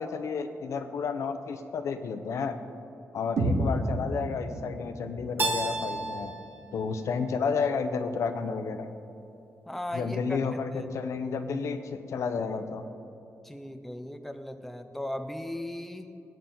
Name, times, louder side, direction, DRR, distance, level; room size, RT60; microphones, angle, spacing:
voice 1, 0.0-2.6 3.1-6.3 6.7-8.9 9.9-12.9, left 5 dB, 75° left, 9 dB, 0.8 m, -31 dB
sound 1, 3.4-7.3, right 1 dB, 85° right, 2.0 m, -33 dB
Keyboard (musical), 5.4-8.2, right 3 dB, 40° right, 1.0 m, -34 dB
voice 2, 9.7-10.6 13.4-16.2, left 1 dB, 5° left, 8 dB, 0.6 m, -37 dB
19.0 x 9.1 x 4.0 m, 2.7 s
wide cardioid pair, 145°, 5 cm